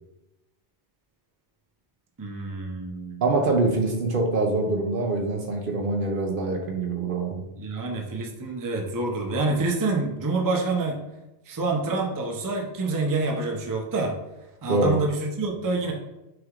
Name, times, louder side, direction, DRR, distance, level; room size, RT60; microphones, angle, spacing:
voice 1, 2.2-3.3 7.6-11.1 11.5-14.2 14.6-15.9, right 3 dB, 25° right, 1 dB, 0.5 m, -27 dB
voice 2, 3.2-7.4 14.7-15.0, right 3 dB, 55° right, 2 dB, 0.8 m, -24 dB
6.1 x 3.3 x 2.4 m, 0.96 s
omnidirectional pair, 1.2 m